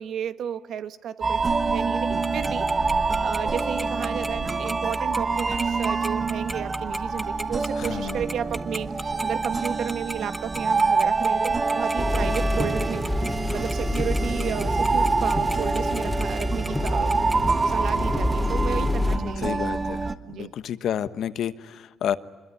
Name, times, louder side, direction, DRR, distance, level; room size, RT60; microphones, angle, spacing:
voice 1, 0.0-13.0 13.5-19.7 20.3-20.5, right 8 dB, 70° right, 12 dB, 1.3 m, -33 dB
sound 1, 1.2-20.1, right 4 dB, 35° right, 1.5 m, -26 dB
Tick-tock, 2.2-17.4, right 1 dB, 10° right, 1.4 m, -35 dB
voice 2, 7.8-8.2 19.1-22.2, left 9 dB, 70° left, 14 dB, 1.1 m, -30 dB
sound 2, 12.0-19.2, left 1 dB, 10° left, 2.7 m, -27 dB
25.0 x 22.0 x 9.9 m, 1.3 s
cardioid pair, 90°, 0 cm